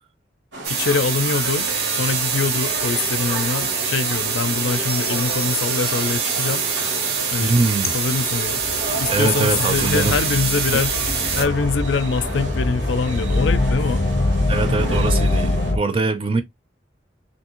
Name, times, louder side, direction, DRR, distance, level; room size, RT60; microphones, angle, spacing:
sound 1, 0.5-15.7, right 1 dB, 80° right, 1.4 m, -32 dB
sound 2, 0.6-11.5, right 6 dB, 60° right, 0.8 m, -24 dB
voice 1, 0.7-6.6 7.3-7.5 7.9-8.6 9.0-11.0 11.3-14.1, left 5 dB, 75° left, 0.4 m, -24 dB
sound 3, 4.9-6.1 7.8-15.8, left 2 dB, 30° left, 0.7 m, -24 dB
voice 2, 7.4-7.9 9.1-10.2 14.5-16.4, right 3 dB, 30° right, 0.6 m, -22 dB
3.4 x 2.7 x 2.9 m
head